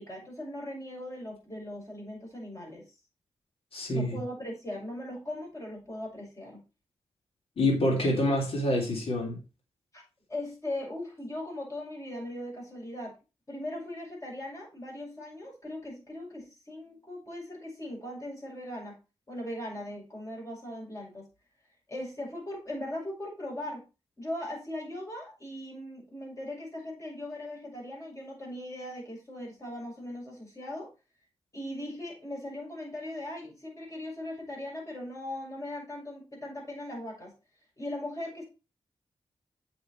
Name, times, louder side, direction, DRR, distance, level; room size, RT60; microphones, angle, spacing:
voice 1, 0.0-2.8 3.9-6.6 9.9-10.0 10.3-13.1 13.5-19.0 19.3-21.3 21.9-23.8 24.2-30.9 31.5-37.3 37.8-38.4, left 1 dB, 30° left, -2 dB, 6.7 m, -39 dB
voice 2, 3.7-4.2 7.6-9.4, left 1 dB, 65° left, -1 dB, 3.5 m, -27 dB
8.2 x 7.0 x 4.5 m, 0.29 s
wide cardioid pair, 90°, 10 cm